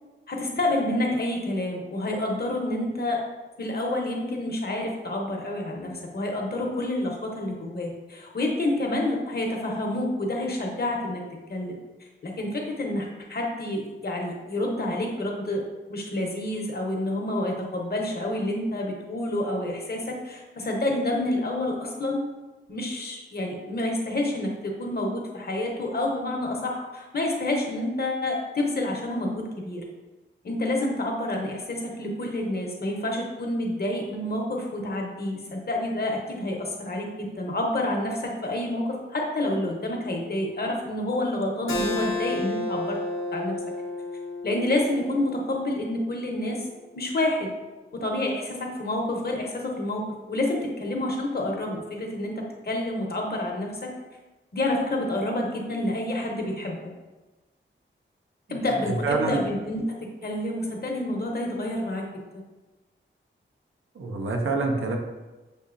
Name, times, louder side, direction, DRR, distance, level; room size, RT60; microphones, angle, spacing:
voice 1, 0.3-3.2 3.6-11.2 11.5-11.8 12.2-15.6 15.9-22.2 22.7-29.9 30.4-43.0 43.3-43.6 44.4-46.6 46.9-47.5 47.9-53.9 54.5-56.8 58.5-59.8 60.2-62.1, left 1 dB, 50° left, 0 dB, 0.9 m, -28 dB
Keyboard (musical), 41.7-46.9, left 2 dB, 80° left, 0.8 m, -32 dB
voice 2, 59.0-59.4 64.0-65.0, right 3 dB, 80° right, 2 dB, 0.6 m, -26 dB
6.5 x 2.7 x 2.5 m, 1.2 s
wide cardioid pair, 100°, 21 cm